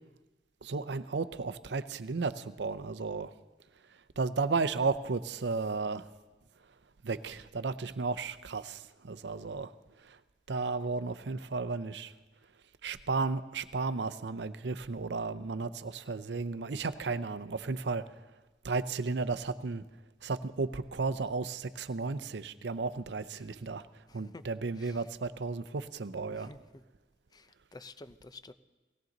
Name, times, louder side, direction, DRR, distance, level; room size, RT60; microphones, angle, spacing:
voice 1, 0.6-3.3 3.7-6.1 6.6-6.8 7.0-10.2 10.5-12.1 12.8-18.2 18.6-19.8 20.2-26.5, right 4 dB, 75° right, 14 dB, 0.6 m, -34 dB
voice 2, 24.1-24.4 24.8-25.1 26.3-26.8 27.3-28.5, left 2 dB, 20° left, 12 dB, 0.5 m, -51 dB
18.5 x 17.0 x 4.0 m, 1.2 s
head